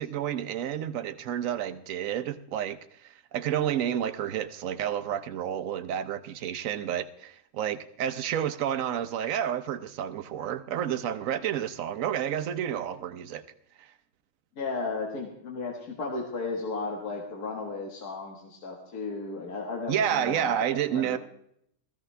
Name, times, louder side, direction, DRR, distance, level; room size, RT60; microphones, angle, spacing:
voice 1, 0.0-13.4 13.8-13.9 19.9-21.2, right 10 dB, 65° right, 11 dB, 1.0 m, -30 dB
voice 2, 14.6-21.2, left 3 dB, 80° left, 0 dB, 2.2 m, -35 dB
16.0 x 14.5 x 3.3 m, 0.71 s
omnidirectional pair, 1.6 m